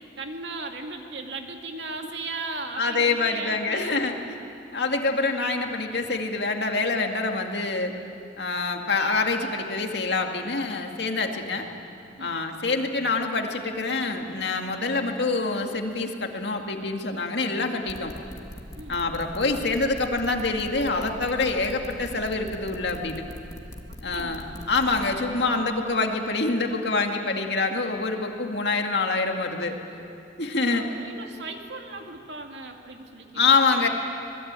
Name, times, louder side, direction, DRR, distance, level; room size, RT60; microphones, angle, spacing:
voice 1, 0.2-4.2 12.2-12.4 18.8-19.0 24.1-24.8 29.9-30.0 30.4-33.5 33.8-33.9, right 3 dB, 75° right, 3 dB, 2.4 m, -37 dB
voice 2, 2.8-4.2 4.7-7.9 8.4-11.7 12.2-18.1 18.9-23.2 24.0-29.8 30.4-30.9 33.3-33.9, left 3 dB, 65° left, 3 dB, 2.2 m, -26 dB
sound 1, 17.9-25.0, equal, 20° left, 2.0 m, -41 dB
26.5 x 20.0 x 9.0 m, 2.6 s
head